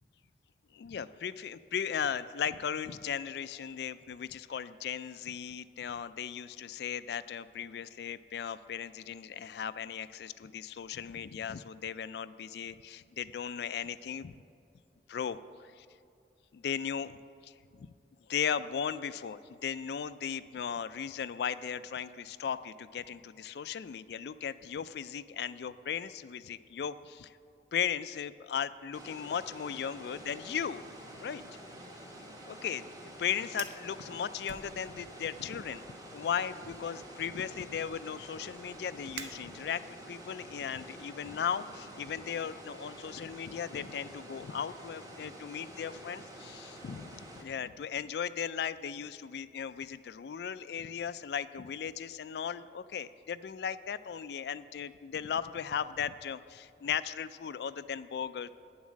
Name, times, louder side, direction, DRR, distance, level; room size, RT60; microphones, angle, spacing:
voice 1, 0.7-14.4 15.1-15.9 16.5-17.2 17.4-17.9 18.3-27.3 27.7-30.8 31.2-31.4 32.5-35.8 36.1-58.6, left 8 dB, 65° left, 15 dB, 0.3 m, -37 dB
sound 1, 28.9-47.4, right 1 dB, 20° right, 1.0 m, -48 dB
Fire, 33.6-33.9 34.4-35.2 35.6-35.9 36.6-40.0, right 7 dB, 75° right, 0.6 m, -49 dB
9.5 x 7.2 x 6.3 m, 2.6 s
head